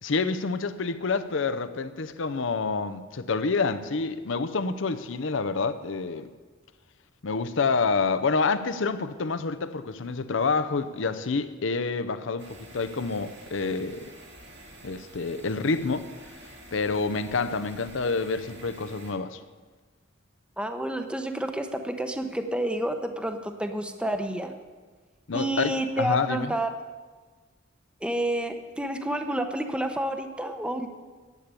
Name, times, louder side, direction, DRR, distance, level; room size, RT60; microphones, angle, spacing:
voice 1, 0.0-6.3 7.2-14.1 14.8-16.1 16.7-19.4 25.3-26.5, left 4 dB, 70° left, 12 dB, 0.7 m, -28 dB
sound 1, 12.4-19.1, right 1 dB, 65° right, 2.3 m, -48 dB
voice 2, 20.6-24.5 25.3-26.7 28.0-30.9, right 1 dB, 5° right, 6 dB, 0.8 m, -29 dB
11.0 x 8.4 x 8.3 m, 1.4 s
head